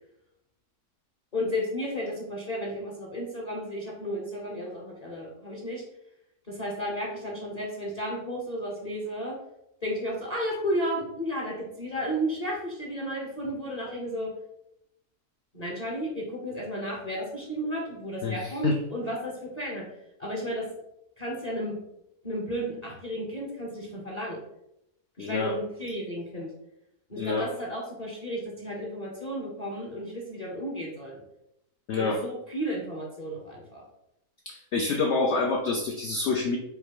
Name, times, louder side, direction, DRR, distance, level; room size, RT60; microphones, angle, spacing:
voice 1, 1.3-5.8 6.5-9.4 9.8-14.3 15.5-19.9 20.2-20.7 21.2-21.8 22.2-24.4 25.2-26.5 27.1-31.2 32.0-33.8, equal, 35° left, -3 dB, 0.7 m, -33 dB
voice 2, 18.2-18.8 25.2-25.5 27.2-27.5 31.9-32.2 34.5-36.6, left 3 dB, 75° left, 2 dB, 0.6 m, -27 dB
5.0 x 2.2 x 4.5 m, 0.81 s
omnidirectional pair, 1.7 m